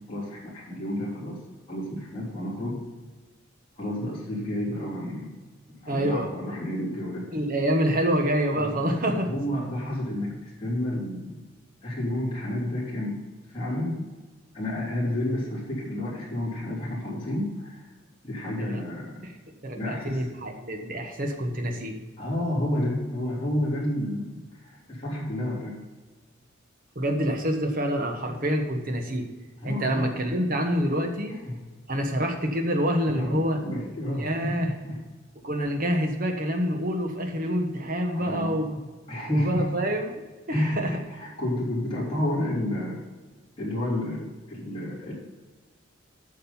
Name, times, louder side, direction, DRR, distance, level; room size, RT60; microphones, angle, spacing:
voice 1, 0.1-1.4 1.7-2.8 3.8-5.3 5.8-7.3 8.5-8.9 9.1-11.4 11.8-13.2 13.5-14.1 14.5-17.8 18.2-19.2 19.8-20.3 22.2-25.8 29.6-30.2 31.5-31.6 33.1-35.0 38.1-38.8 39.1-39.7 40.5-43.0 43.6-45.1, left 1 dB, 25° left, -7 dB, 3.5 m, -30 dB
voice 2, 5.9-6.3 7.3-9.3 18.6-18.8 19.2-19.4 19.6-22.0 26.9-29.3 29.6-31.4 31.9-33.6 34.2-34.7 35.4-38.8 39.3-40.9, equal, 40° right, 3 dB, 1.3 m, -27 dB
8.8 x 6.5 x 5.4 m, 1.3 s
head